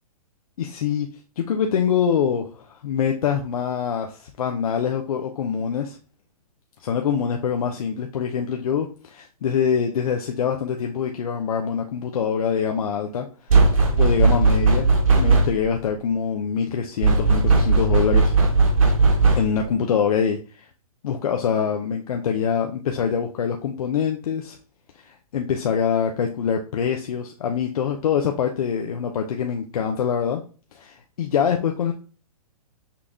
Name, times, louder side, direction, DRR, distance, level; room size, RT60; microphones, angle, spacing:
voice 1, 0.6-6.0 6.8-13.3 14.0-14.9 15.1-18.3 19.4-20.7 21.0-24.6 25.0-30.4 30.7-31.9, left 7 dB, 65° left, 4 dB, 0.7 m, -24 dB
sound 1, 13.5-15.7 17.0-19.7, right 3 dB, 60° right, 1.3 m, -17 dB
5.8 x 2.4 x 3.5 m, 0.37 s
hypercardioid pair, 150°, 20 cm